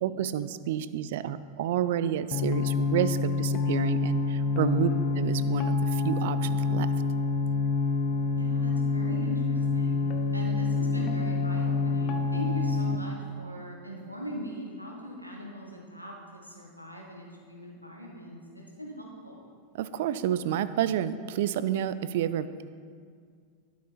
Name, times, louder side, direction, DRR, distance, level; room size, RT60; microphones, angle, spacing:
voice 1, 0.0-4.9 5.2-6.9 19.7-22.7, right 11 dB, 55° right, 14 dB, 0.4 m, -29 dB
sound 1, 2.3-13.0, left 4 dB, 35° left, 0.7 m, -27 dB
voice 2, 4.6-5.1 8.3-10.0 10.3-19.4, equal, 90° left, -1 dB, 1.4 m, -40 dB
11.5 x 6.2 x 4.3 m, 2.1 s
figure-of-eight pair, 90°, 0 cm